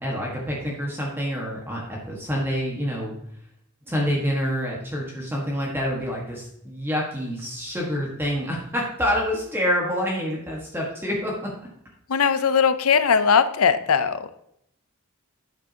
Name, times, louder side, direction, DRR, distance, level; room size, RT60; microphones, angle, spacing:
voice 1, 0.0-3.1 3.9-11.5, equal, 10° right, -3 dB, 1.4 m, -27 dB
voice 2, 12.1-14.3, left 6 dB, 75° left, 12 dB, 0.6 m, -19 dB
9.0 x 8.1 x 2.8 m, 0.76 s
head